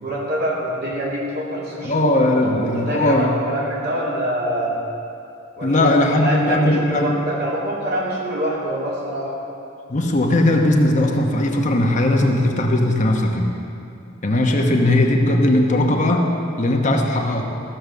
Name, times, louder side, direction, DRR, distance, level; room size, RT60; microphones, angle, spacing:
voice 1, 0.0-4.8 5.6-5.9 6.1-9.3, right 1 dB, 55° right, -5 dB, 2.7 m, -25 dB
voice 2, 1.8-3.3 5.6-7.1 9.9-13.5 14.2-17.4, left 1 dB, 40° left, 1 dB, 1.0 m, -18 dB
14.5 x 6.6 x 6.7 m, 2.6 s
head